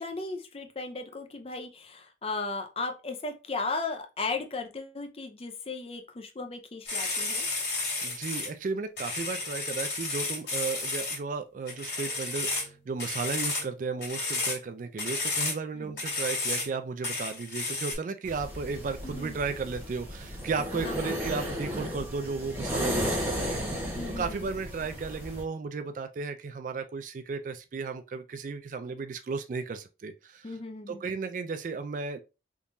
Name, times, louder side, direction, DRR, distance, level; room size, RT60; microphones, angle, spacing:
voice 1, 0.0-7.5 15.8-16.0 19.0-19.4 20.8-21.2 22.8-23.3 24.0-24.5 30.4-31.0, left 3 dB, 30° left, 0.5 m, -36 dB
sound 1, 6.9-8.5 9.0-11.2 11.7-12.7 13.0-13.7 14.0-14.6 15.0-15.5 16.0-16.7 17.0-18.0, left 3 dB, 60° left, 2.2 m, -32 dB
voice 2, 8.0-30.5 30.9-32.2, right 4 dB, 45° right, 0.3 m, -34 dB
sound 2, 18.2-25.4, equal, 10° right, 0.9 m, -34 dB
3.6 x 2.9 x 2.6 m
head